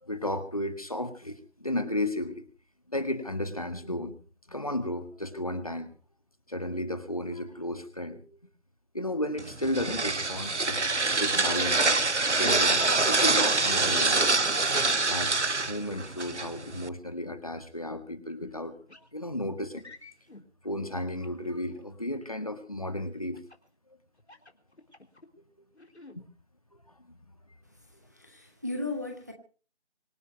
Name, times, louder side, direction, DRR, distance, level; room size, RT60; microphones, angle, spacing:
voice 1, 0.0-2.4 2.9-4.2 4.5-5.9 6.5-8.2 8.9-14.4 15.1-15.3 15.7-18.8 19.1-19.9 20.6-23.4 26.1-26.3, left 1 dB, 30° left, 10 dB, 1.8 m, -33 dB
sound 1, 9.4-16.9, right 3 dB, 90° right, 1.2 m, -25 dB
sound 2, 18.9-19.1 19.7-20.4 21.2-21.8 23.3-23.7 24.2-25.3 25.7-26.2, left 3 dB, 70° left, 3.8 m, -51 dB
voice 2, 28.1-29.3, left 2 dB, 15° right, 4 dB, 1.6 m, -35 dB
25.5 x 9.7 x 5.3 m, 0.39 s
figure-of-eight pair, 175°, 34 cm